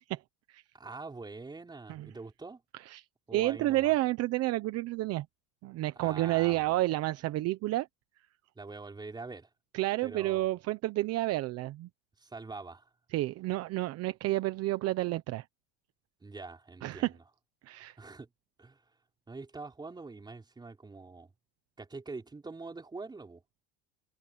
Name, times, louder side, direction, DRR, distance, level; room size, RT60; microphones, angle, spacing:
voice 1, 0.7-2.6 3.3-3.9 6.0-6.7 8.5-9.5 10.0-10.5 12.2-12.9 16.2-17.2 18.0-18.3 18.6-18.8 19.3-21.3 21.8-23.4, right 3 dB, 15° right, 4.5 m, -44 dB
voice 2, 3.3-5.3 5.6-7.9 9.7-11.9 13.1-15.4 16.8-17.1 17.6-18.0, right 17 dB, 50° right, 1.0 m, -30 dB
supercardioid pair, 135°, 33 cm